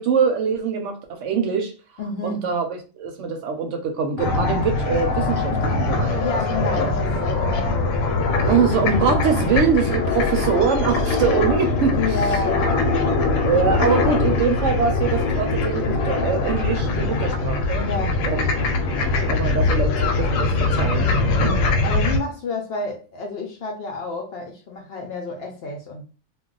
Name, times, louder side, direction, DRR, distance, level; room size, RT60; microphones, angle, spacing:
voice 1, 0.0-1.7 2.2-6.2 6.8-6.9 8.5-12.4 13.4-18.5 19.3-21.1 21.4-21.6, right 6 dB, 70° right, 0.9 m, -23 dB
voice 2, 2.0-2.5 6.2-8.6 9.3-9.4 11.9-12.9 17.7-18.2 21.8-26.0, left 3 dB, 60° left, 0.6 m, -30 dB
sound 1, 4.2-22.2, left 3 dB, 80° left, 1.0 m, -22 dB
2.2 x 2.2 x 3.7 m
omnidirectional pair, 1.4 m